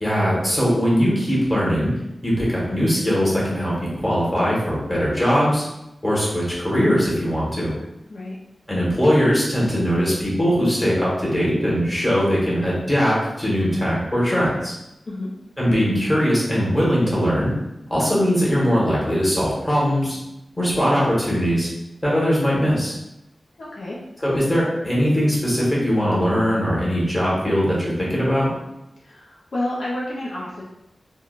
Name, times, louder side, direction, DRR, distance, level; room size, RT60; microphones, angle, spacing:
voice 1, 0.0-1.9 2.2-5.6 6.0-7.7 8.7-14.7 15.6-17.5 17.9-20.2 20.6-21.7 22.0-22.9 24.2-28.5, equal, 20° left, -6 dB, 1.4 m, -20 dB
voice 2, 23.6-24.0 29.0-30.6, left 1 dB, 70° left, -6 dB, 0.6 m, -30 dB
3.5 x 2.2 x 2.4 m, 0.88 s
wide cardioid pair, 70°, 0 cm